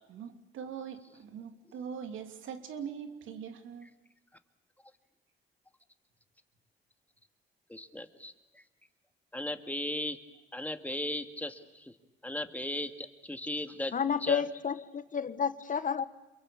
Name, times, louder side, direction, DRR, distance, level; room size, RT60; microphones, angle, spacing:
voice 1, 0.1-3.9, right 7 dB, 80° right, 2.9 m, -42 dB
voice 2, 7.7-8.6 9.3-10.2 10.5-12.0 12.2-14.0 14.2-14.4, left 1 dB, 10° left, 2.1 m, -37 dB
voice 3, 13.9-16.1, left 6 dB, 40° left, 1.3 m, -31 dB
28.0 x 22.5 x 8.5 m
cardioid pair, 90°, 20 cm